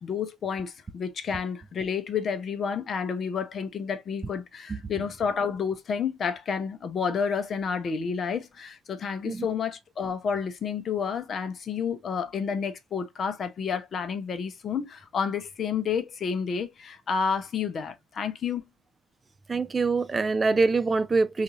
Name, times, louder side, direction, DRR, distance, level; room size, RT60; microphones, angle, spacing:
voice 1, 0.0-18.6, left 6 dB, 40° left, 0.6 m, -30 dB
voice 2, 19.5-21.4, right 4 dB, 25° right, 0.4 m, -24 dB
3.6 x 2.4 x 2.8 m
figure-of-eight pair, 55°, 0 cm